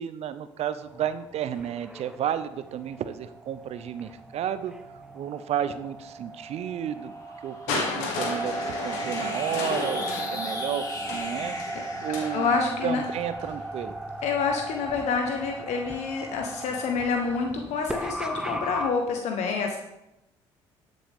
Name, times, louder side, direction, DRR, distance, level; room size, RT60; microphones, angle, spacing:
voice 1, 0.0-4.7 5.1-7.1 7.4-10.8 11.1-11.6 12.0-12.5 12.8-13.9, right 9 dB, 60° right, 13 dB, 0.7 m, -32 dB
sound 1, 0.9-18.9, right 2 dB, 5° right, 1.1 m, -37 dB
sound 2, 6.0-14.7, left 2 dB, 30° left, 2.4 m, -41 dB
Crushing, 7.7-13.6 14.5-14.6, left 4 dB, 85° left, 1.6 m, -34 dB
voice 2, 12.3-13.0 14.2-19.8, left 5 dB, 70° left, 2 dB, 1.1 m, -27 dB
12.0 x 7.6 x 3.6 m, 0.91 s
supercardioid pair, 65°, 12 cm